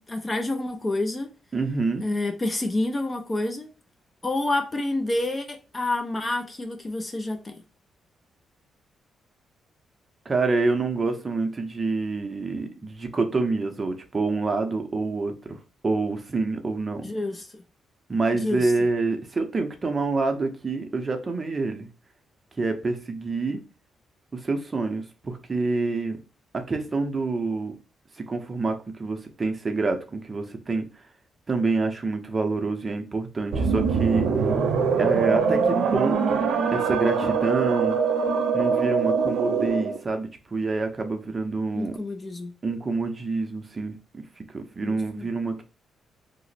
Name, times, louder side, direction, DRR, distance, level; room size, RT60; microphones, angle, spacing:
voice 1, 0.0-1.3 2.0-3.7 4.2-7.6 17.0-17.6 18.3-18.7 41.7-42.5 44.8-45.3, left 2 dB, 20° left, 0.4 m, -28 dB
voice 2, 1.5-2.0 10.3-15.6 15.8-17.1 18.1-21.9 22.6-23.6 24.3-26.2 26.5-27.7 28.2-30.9 31.5-34.3 35.0-36.4 36.7-38.0 38.5-41.9 42.6-44.2 44.5-45.6, right 3 dB, 25° right, 0.6 m, -27 dB
sound 1, 33.5-40.0, right 5 dB, 85° right, 0.6 m, -23 dB
2.9 x 2.0 x 4.0 m
cardioid pair, 140°, 0 cm